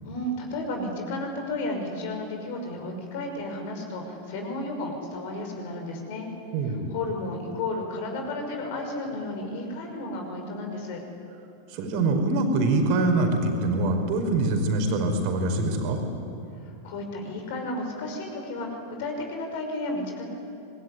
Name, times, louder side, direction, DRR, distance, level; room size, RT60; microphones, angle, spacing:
voice 1, 0.0-6.3 6.7-11.0 16.8-20.2, left 2 dB, 50° left, 3 dB, 5.9 m, -33 dB
voice 2, 6.5-6.9 11.7-16.0, right 2 dB, 45° right, 5 dB, 4.9 m, -24 dB
25.0 x 21.5 x 9.9 m, 2.7 s
figure-of-eight pair, 90°, 0 cm